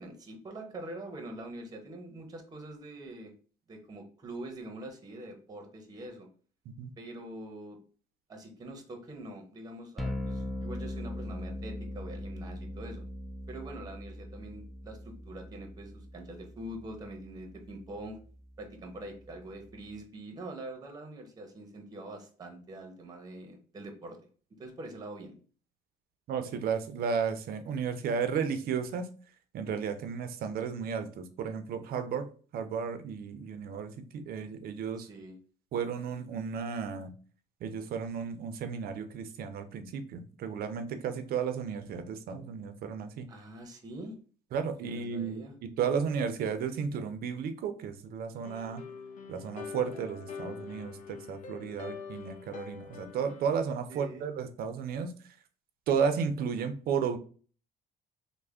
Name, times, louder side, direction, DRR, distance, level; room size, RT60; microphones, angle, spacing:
voice 1, 0.0-3.3 3.7-6.3 7.0-7.8 8.3-13.0 13.5-18.2 18.6-24.2 24.6-25.3 35.0-35.4 43.3-44.1 44.8-45.5 53.9-54.3, right 1 dB, 25° right, 4 dB, 0.8 m, -44 dB
sound 1, 10.0-20.0, left 1 dB, ahead, 0.4 m, -41 dB
voice 2, 26.3-29.1 29.5-32.3 32.5-35.1 35.7-37.1 37.6-43.3 44.5-48.8 49.3-55.3 55.9-57.2, right 6 dB, 65° right, 9 dB, 0.5 m, -33 dB
sound 2, 48.4-53.5, left 6 dB, 55° left, 0.5 m, -44 dB
3.2 x 2.1 x 3.5 m, 0.41 s
cardioid pair, 110°, 17 cm